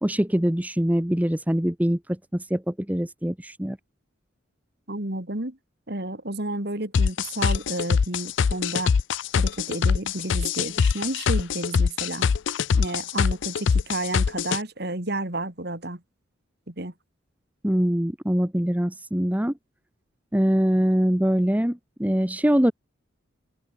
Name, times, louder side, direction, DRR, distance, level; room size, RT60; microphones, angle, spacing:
voice 1, 0.0-3.8 17.6-19.5 20.3-22.7, equal, 10° right, 0.9 m, -23 dB
voice 2, 4.9-5.6 5.9-8.9 9.4-12.3 12.7-16.0 16.7-16.9, right 2 dB, 55° right, 2.9 m, -31 dB
sound 1, 6.9-14.6, left 6 dB, 65° left, 0.4 m, -23 dB
open air
head